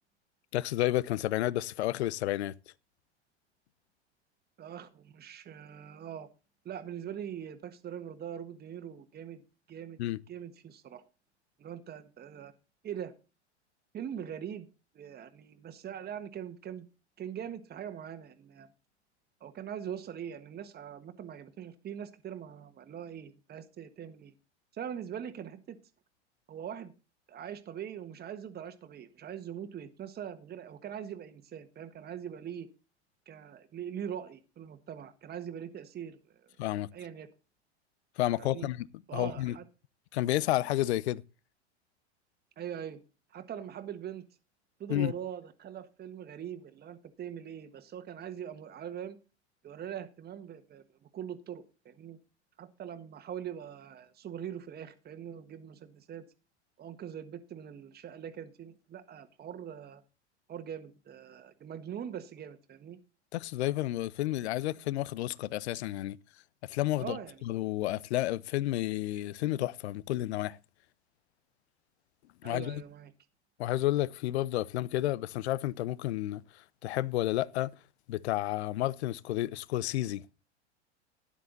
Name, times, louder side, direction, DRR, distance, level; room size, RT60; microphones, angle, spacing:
voice 1, 0.5-2.5 10.0-10.2 36.6-36.9 38.2-38.9 39.1-39.6 40.1-41.2 44.9-45.1 63.3-66.2 66.7-67.2 67.5-70.6 72.4-72.8 73.6-76.4 76.8-77.7 78.1-80.2, left 15 dB, 65° left, 0.7 m, -31 dB
voice 2, 4.6-6.3 6.6-9.4 9.7-10.0 10.3-11.0 11.6-12.5 12.8-13.1 13.9-14.7 14.9-16.9 17.2-18.7 19.4-24.3 24.7-25.8 26.5-26.9 27.3-32.7 33.3-36.5 36.9-37.3 38.4-38.7 39.1-39.6 42.6-43.0 43.3-44.2 44.8-49.2 49.6-52.2 52.6-56.2 56.8-60.0 60.5-63.0 67.0-67.4 72.4-73.1, right 9 dB, 25° right, 1.5 m, -42 dB
12.5 x 10.0 x 3.9 m
hypercardioid pair, 90°, 35 cm